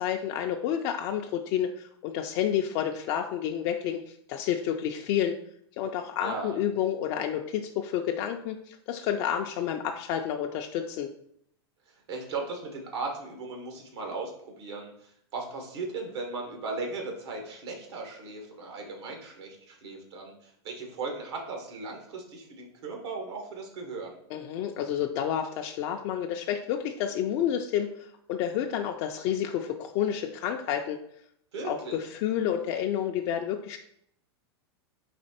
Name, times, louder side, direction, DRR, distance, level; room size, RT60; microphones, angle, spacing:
voice 1, 0.0-5.4 5.8-11.1 24.3-31.0 31.6-33.8, left 9 dB, 50° left, 3 dB, 0.4 m, -30 dB
voice 2, 6.2-6.6 11.9-14.3 14.6-24.2 31.5-32.0, right 3 dB, 80° right, 2 dB, 1.3 m, -37 dB
4.2 x 2.8 x 4.2 m, 0.69 s
hypercardioid pair, 115°, 14 cm